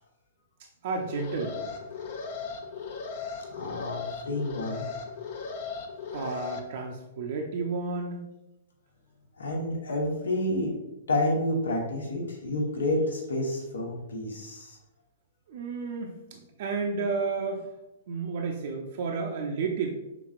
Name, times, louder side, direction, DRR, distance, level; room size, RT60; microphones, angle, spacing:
voice 1, 0.8-1.8 6.1-8.2 15.5-17.7 18.1-19.9, right 4 dB, 55° right, 1 dB, 0.5 m, -32 dB
Alarm, 1.0-6.6, left 5 dB, 55° left, 0.7 m, -37 dB
voice 2, 3.5-4.8 9.4-10.8 11.1-14.8, left 1 dB, 75° left, 1 dB, 1.0 m, -29 dB
5.9 x 3.8 x 2.4 m, 0.97 s
figure-of-eight pair, 110°, 0 cm